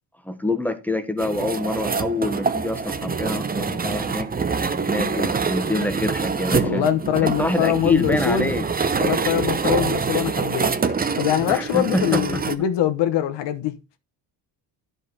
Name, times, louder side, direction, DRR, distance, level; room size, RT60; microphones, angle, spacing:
voice 1, 0.2-4.3 4.9-6.9 7.2-8.7 11.5-12.4, left 2 dB, 5° left, 1.2 m, -26 dB
sound 1, 1.2-12.6, right 5 dB, 20° right, 0.8 m, -25 dB
voice 2, 6.6-8.5 9.0-13.7, left 11 dB, 70° left, 1.2 m, -23 dB
11.0 x 5.3 x 4.1 m
cardioid pair, 105°, 43 cm